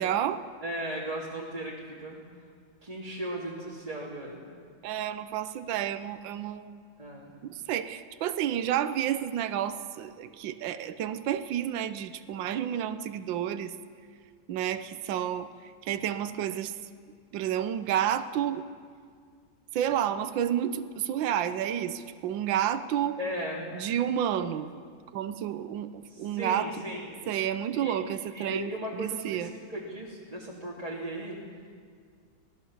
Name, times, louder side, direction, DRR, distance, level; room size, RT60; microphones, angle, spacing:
voice 1, 0.0-0.4 4.8-6.8 7.4-13.7 14.5-16.7 17.3-18.7 19.7-23.2 23.7-24.8 25.1-26.7 27.3-29.5, right 10 dB, 75° right, 11 dB, 1.5 m, -30 dB
voice 2, 0.6-2.2 2.8-4.4 7.0-7.3 23.2-23.7 26.1-27.1 27.7-28.0 28.3-31.4, right 1 dB, 20° right, -6 dB, 2.9 m, -36 dB
26.5 x 18.0 x 7.3 m, 2.1 s
omnidirectional pair, 2.2 m